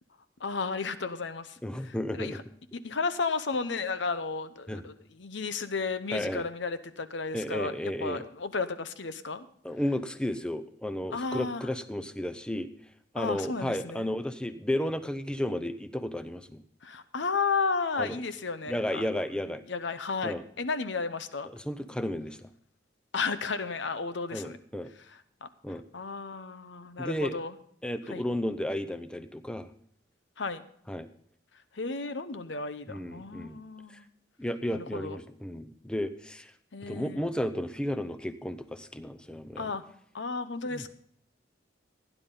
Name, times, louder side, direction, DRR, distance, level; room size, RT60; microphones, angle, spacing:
voice 1, 0.4-1.6 1.8-2.4 2.8-9.5 11.1-11.7 13.2-14.1 16.8-19.2 19.7-21.5 23.1-24.6 25.1-27.5 28.1-28.2 30.4-30.6 31.7-34.1 34.7-35.2 36.7-37.2 39.6-39.8 40.1-40.9, left 4 dB, 75° left, 11 dB, 0.9 m, -33 dB
voice 2, 1.6-2.4 4.7-4.8 6.1-6.4 7.3-8.2 9.6-12.7 13.1-16.6 18.0-18.2 18.7-19.6 20.2-20.4 21.5-22.4 24.3-24.9 25.6-25.8 27.0-27.4 27.8-29.7 30.9-31.1 32.9-33.6 34.4-36.5 36.9-39.7 40.7-40.9, left 1 dB, 5° left, 11 dB, 0.6 m, -33 dB
16.5 x 10.0 x 3.8 m, 0.64 s
head